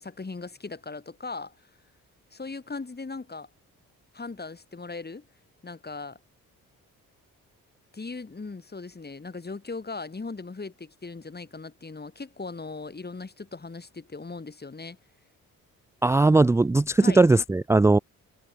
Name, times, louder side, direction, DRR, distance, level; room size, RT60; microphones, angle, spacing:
voice 1, 0.0-1.5 2.3-3.5 4.1-5.3 5.6-6.2 7.9-15.0 17.0-17.2 18.0-18.1, left 3 dB, 30° left, 4.5 m, -38 dB
voice 2, 16.0-18.0, right 2 dB, 10° right, 0.4 m, -19 dB
supercardioid pair, 65°, 35 cm